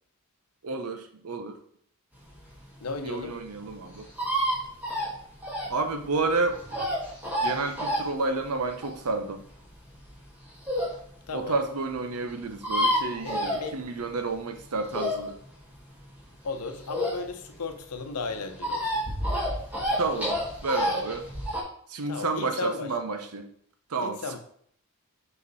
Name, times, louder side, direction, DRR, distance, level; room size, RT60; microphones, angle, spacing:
voice 1, 0.6-1.6 3.0-4.1 5.7-6.6 7.4-9.4 11.3-15.4 20.0-20.4 20.6-21.3 21.9-23.5 23.9-24.4, right 3 dB, 80° right, 7 dB, 0.8 m, -30 dB
sound 1, 2.4-11.0 11.4-11.5 11.7-11.8 12.0-12.1 12.3-14.2 14.5-17.5 17.8-21.6, equal, 5° right, 1.8 m, -29 dB
voice 2, 2.8-3.3 11.3-11.6 13.2-13.8 16.4-18.9 22.1-22.9 24.0-24.4, left 3 dB, 85° left, 7 dB, 0.8 m, -35 dB
5.3 x 5.2 x 4.1 m, 0.64 s
head